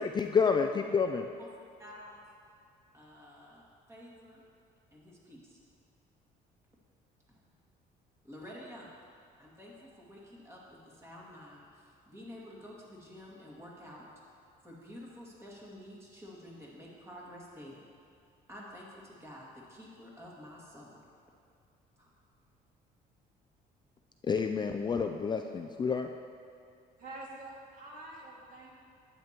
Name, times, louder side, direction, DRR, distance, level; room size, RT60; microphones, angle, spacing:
voice 1, 0.0-1.3 24.2-26.1, left 5 dB, 25° left, 5 dB, 0.4 m, -29 dB
voice 2, 1.8-2.2 2.9-4.4 4.9-5.6 7.3-7.4 8.2-9.0 9.4-14.1 14.6-17.9 18.5-21.0 22.0-22.1, equal, 15° right, -5 dB, 2.2 m, -50 dB
voice 3, 27.0-28.7, right 2 dB, 55° right, -4 dB, 2.2 m, -46 dB
11.0 x 8.8 x 3.0 m, 2.4 s
cardioid pair, 110°, 17 cm